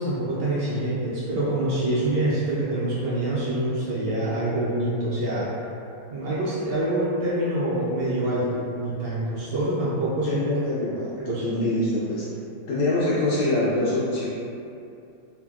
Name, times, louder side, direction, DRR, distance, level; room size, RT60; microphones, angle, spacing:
voice 1, 0.0-5.5 6.1-10.4 11.2-11.5, right 1 dB, 75° right, -8 dB, 1.1 m, -26 dB
voice 2, 10.2-12.2 12.7-14.3, left 1 dB, 75° left, -9 dB, 1.1 m, -25 dB
3.4 x 2.1 x 2.3 m, 2.6 s
omnidirectional pair, 2.2 m